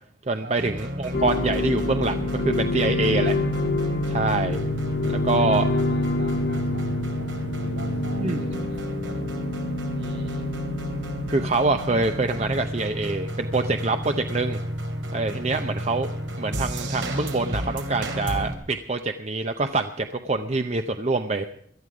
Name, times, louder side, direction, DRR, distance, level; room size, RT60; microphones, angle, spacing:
voice 1, 0.3-3.3 4.1-4.6 5.0-5.6 8.2-8.4 11.3-14.6 15.1-16.1 16.4-21.4, right 3 dB, 35° right, 7 dB, 0.7 m, -25 dB
sound 1, 0.6-18.6, equal, 90° right, 2.8 m, -32 dB
sound 2, 1.1-12.6, left 2 dB, 60° left, 0.7 m, -27 dB
voice 2, 5.2-9.2 9.9-10.5 15.5-15.8, right 1 dB, 70° right, 2 dB, 6.2 m, -44 dB
17.5 x 12.5 x 5.0 m, 0.67 s
head